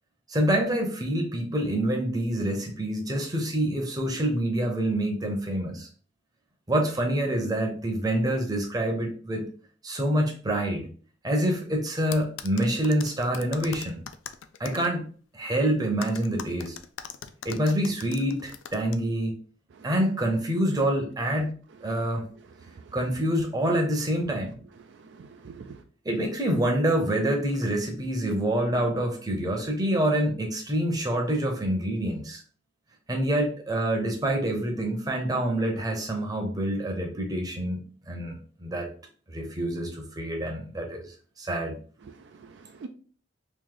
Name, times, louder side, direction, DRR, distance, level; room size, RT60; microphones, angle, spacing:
voice 1, 0.3-5.9 6.7-9.4 9.8-10.9 11.2-14.0 14.6-15.1 15.3-16.8 17.4-19.4 19.8-22.2 22.9-24.6 26.0-32.4 33.1-38.9 39.3-41.0 41.4-41.8, right 1 dB, 20° right, 2 dB, 0.7 m, -26 dB
sound 1, 12.1-14.9 16.0-19.0, left 8 dB, 85° left, 0.3 m, -40 dB
voice 2, 22.6-23.0 24.8-25.8 42.0-42.9, right 4 dB, 65° right, 6 dB, 0.3 m, -46 dB
3.1 x 2.6 x 3.7 m, 0.41 s
head